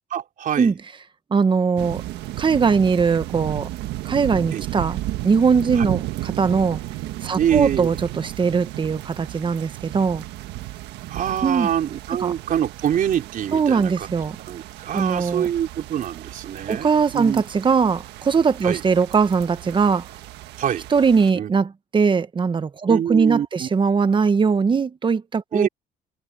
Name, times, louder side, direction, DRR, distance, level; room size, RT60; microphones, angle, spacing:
voice 1, 0.1-0.7 4.5-4.6 5.8-5.9 7.4-7.9 11.1-13.9 14.5-17.4 18.6-18.8 20.6-20.9 21.3-21.5 22.9-23.7 25.5-25.7, right 10 dB, 55° right, 3.6 m, -25 dB
voice 2, 1.3-2.0 2.4-3.7 4.0-5.0 5.2-6.8 7.2-10.2 11.4-11.7 12.2-12.3 13.5-14.4 14.9-15.5 16.7-20.1 20.9-25.7, right 5 dB, 30° right, 1.2 m, -20 dB
sound 1, 1.8-21.3, right 16 dB, 85° right, 1.5 m, -34 dB
cardioid pair, 110°, 17 cm